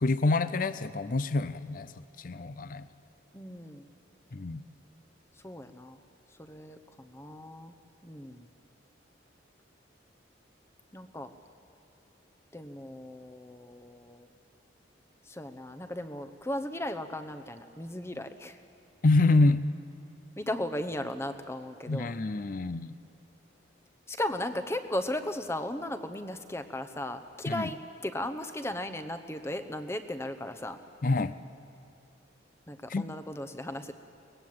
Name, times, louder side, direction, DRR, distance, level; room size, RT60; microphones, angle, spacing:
voice 1, 0.0-1.9 2.2-2.9 4.3-4.6 19.0-19.6 21.9-23.0 27.5-27.7 31.0-31.4 32.9-33.1, left 2 dB, 45° left, 14 dB, 0.5 m, -26 dB
voice 2, 3.3-3.9 5.4-6.0 6.4-7.7 8.0-8.5 10.9-11.3 12.5-14.3 15.3-18.6 20.4-22.1 24.1-27.8 28.0-30.8 32.7-33.9, left 1 dB, 15° left, 9 dB, 0.9 m, -36 dB
24.0 x 19.0 x 7.8 m, 2.7 s
head